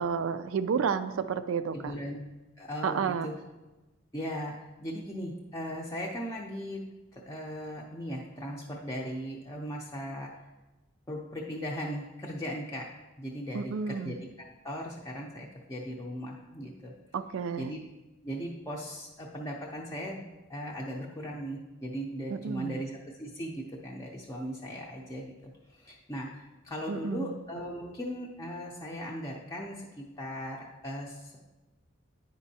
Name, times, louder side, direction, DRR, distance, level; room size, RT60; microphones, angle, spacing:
voice 1, 0.0-1.9 2.8-3.3 13.5-14.1 17.1-17.7 22.3-22.8 26.9-27.3, right 6 dB, 90° right, 12 dB, 0.4 m, -31 dB
voice 2, 1.7-2.2 2.6-3.4 4.1-10.3 11.1-16.9 17.6-17.9 18.2-31.4, equal, 15° left, -3 dB, 0.5 m, -38 dB
9.1 x 5.2 x 2.7 m, 1.1 s
head